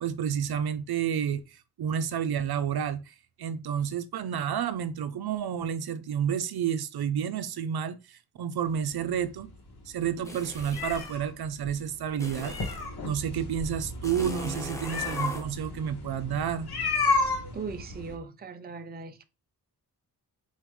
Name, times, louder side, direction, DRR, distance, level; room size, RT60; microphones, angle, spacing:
voice 1, 0.0-9.5 9.9-12.6 13.0-16.7, right 8 dB, 75° right, 0.6 m, -30 dB
sound 1, 8.7-18.1, left 3 dB, 75° left, 1.6 m, -33 dB
sound 2, 10.2-11.2 12.2-12.9 14.0-15.5, left 1 dB, 10° left, 0.9 m, -40 dB
voice 2, 17.5-19.2, right 4 dB, 25° right, 0.5 m, -39 dB
4.3 x 3.5 x 3.1 m
wide cardioid pair, 115°, 38 cm